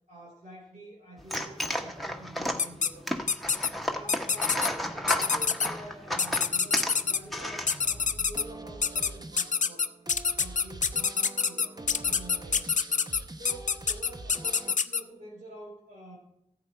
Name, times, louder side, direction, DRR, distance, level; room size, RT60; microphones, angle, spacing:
voice 1, 0.1-3.3 3.9-9.9 10.3-11.1 11.4-12.7 13.4-16.2, right 1 dB, 85° right, -4 dB, 4.7 m, -47 dB
sound 1, 1.2-8.1, equal, ahead, 1.1 m, -33 dB
sound 2, 2.6-2.9 3.3-3.7 4.1-4.7 5.1-5.7 6.2-7.2 7.7-8.4 8.8-9.1 9.4-15.0, left 6 dB, 75° left, 0.5 m, -26 dB
sound 3, 7.6-14.8, right 2 dB, 30° right, 0.8 m, -44 dB
14.5 x 7.7 x 4.5 m, 0.77 s
wide cardioid pair, 80°, 13 cm